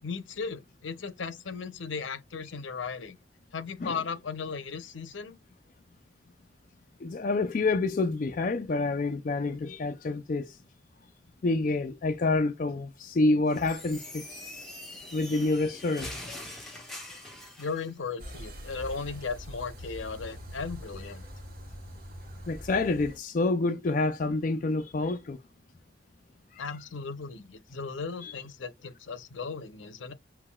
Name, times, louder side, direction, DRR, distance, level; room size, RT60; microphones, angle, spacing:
voice 1, 0.0-3.2 3.5-5.4 17.6-21.2 26.6-30.1, left 5 dB, 80° left, 0.7 m, -36 dB
voice 2, 7.0-10.6 11.4-14.4 15.1-16.1 17.0-17.2 22.5-25.4 26.5-26.6 28.2-28.3, left 3 dB, 45° left, 0.4 m, -28 dB
sound 1, 13.5-17.9, left 1 dB, ahead, 1.2 m, -43 dB
sound 2, 18.2-23.2, equal, 50° right, 1.1 m, -43 dB
5.8 x 2.2 x 2.2 m
head